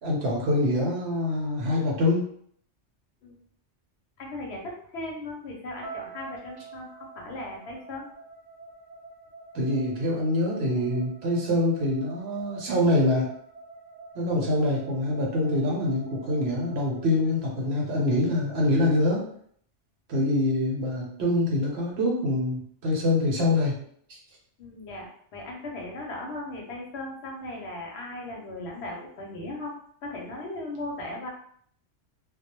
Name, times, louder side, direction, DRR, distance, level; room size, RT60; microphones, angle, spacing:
voice 1, 0.0-2.3 9.5-13.3 14.1-19.2 20.1-23.8 24.1-24.2, left 1 dB, 65° right, -2 dB, 0.9 m, -25 dB
voice 2, 4.2-8.0 20.1-20.3 24.6-29.7 30.0-31.3, left 2 dB, 70° left, 0 dB, 0.8 m, -37 dB
sound 1, 5.8-18.0, right 4 dB, 90° right, 1.0 m, -47 dB
2.2 x 2.0 x 2.9 m, 0.62 s
omnidirectional pair, 1.2 m